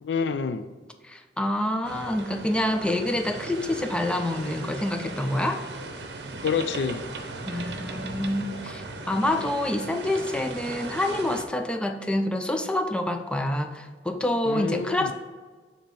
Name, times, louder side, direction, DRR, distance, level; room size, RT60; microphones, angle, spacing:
voice 1, 0.0-0.7 6.4-7.1 14.5-15.1, left 5 dB, 80° left, 12 dB, 0.4 m, -28 dB
voice 2, 1.0-5.6 7.5-15.1, left 1 dB, 5° left, 6 dB, 0.3 m, -27 dB
sound 1, 1.8-11.5, right 2 dB, 65° right, 0.7 m, -37 dB
7.3 x 2.8 x 5.3 m, 1.4 s
head